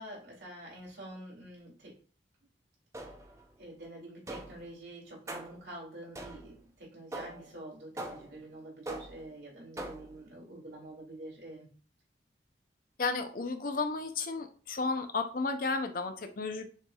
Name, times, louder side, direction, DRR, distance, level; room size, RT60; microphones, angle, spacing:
voice 1, 0.0-2.0 3.6-11.7, right 1 dB, 70° right, -4 dB, 2.3 m, -47 dB
sound 1, 2.9-3.4 4.3-4.7 5.3-5.7 6.1-6.6 7.1-7.5 8.0-8.4 8.9-9.3 9.8-10.2, right 2 dB, 15° right, 0.5 m, -42 dB
voice 2, 13.0-16.7, left 3 dB, 50° left, 7 dB, 0.5 m, -33 dB
6.5 x 3.2 x 2.3 m, 0.40 s
head